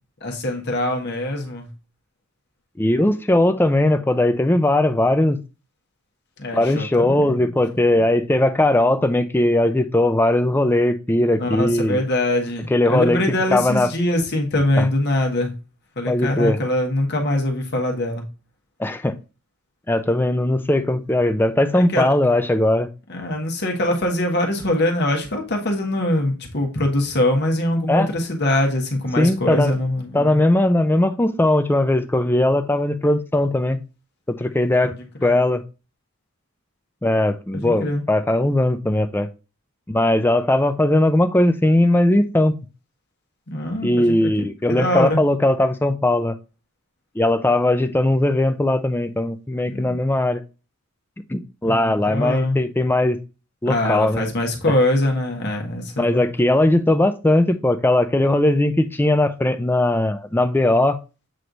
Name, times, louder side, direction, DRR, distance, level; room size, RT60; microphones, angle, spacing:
voice 1, 0.2-1.7 6.4-7.5 11.4-15.5 16.0-18.2 21.7-22.1 23.1-30.4 34.8-35.4 37.5-38.0 43.5-44.3 44.7-45.2 49.7-50.0 51.7-52.6 53.6-56.3, left 1 dB, 50° left, 1.3 m, -23 dB
voice 2, 2.8-5.4 6.5-12.0 12.7-13.2 13.5-13.9 14.8-14.9 16.1-16.6 18.8-19.1 19.9-22.9 27.9-28.1 29.2-29.7 30.1-33.8 34.3-34.9 35.2-35.6 37.0-39.3 39.9-42.6 43.8-46.4 47.2-50.4 51.3-53.2 53.6-54.2 56.0-61.0, left 1 dB, 10° left, 0.4 m, -19 dB
7.7 x 3.2 x 3.9 m
head